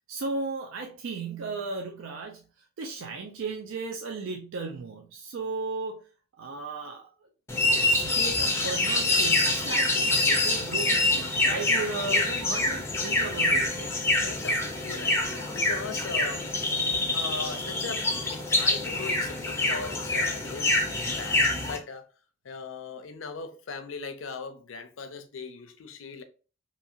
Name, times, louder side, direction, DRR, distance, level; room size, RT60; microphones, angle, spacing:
voice 1, 0.1-2.4 2.8-6.1 6.4-7.3 7.7-14.0, right 3 dB, 75° right, 0.4 m, -35 dB
sound 1, 7.5-21.8, left 2 dB, 10° left, 0.4 m, -26 dB
voice 2, 14.1-16.5 17.1-20.7 21.2-22.1 22.4-26.2, left 4 dB, 70° left, 0.5 m, -39 dB
2.8 x 2.7 x 2.5 m
head